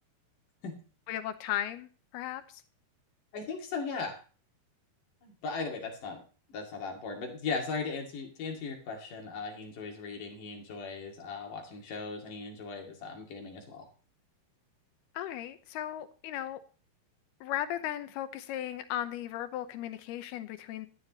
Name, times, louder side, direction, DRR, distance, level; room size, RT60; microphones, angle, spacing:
voice 1, 1.1-2.4 15.2-16.6 17.4-20.9, left 12 dB, 80° left, 2.9 m, -36 dB
voice 2, 3.3-4.2 5.2-6.2 6.5-13.9, left 4 dB, 60° left, 3.7 m, -38 dB
16.5 x 11.5 x 3.1 m
omnidirectional pair, 4.5 m